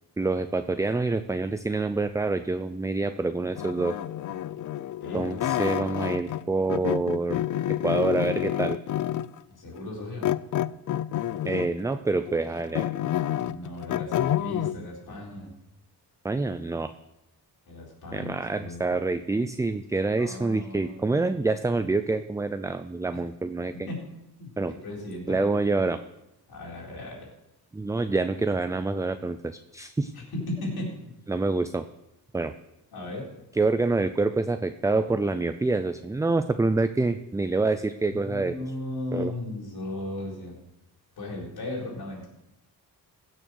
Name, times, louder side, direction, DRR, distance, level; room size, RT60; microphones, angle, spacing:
voice 1, 0.2-4.0 5.1-7.4 7.8-8.8 11.4-12.9 16.2-16.9 18.1-23.7 24.6-24.7 25.3-26.0 27.7-30.1 31.3-31.8 32.3-32.5 33.5-38.6 39.1-39.3, right 3 dB, 10° right, 10 dB, 0.3 m, -26 dB
sound 1, 3.6-6.4 6.7-9.4 10.2-11.8 12.3-14.8, left 12 dB, 50° left, 0.5 m, -29 dB
voice 2, 9.6-10.3 13.4-15.5 17.7-19.0 20.2-21.3 23.1-23.2 23.7-24.0 24.4-25.8 26.5-27.3 30.1-31.0 32.9-33.3 38.1-40.6 41.2-42.3, left 2 dB, 70° left, -2 dB, 4.3 m, -36 dB
16.0 x 6.5 x 6.2 m, 0.91 s
cardioid pair, 105°, 39 cm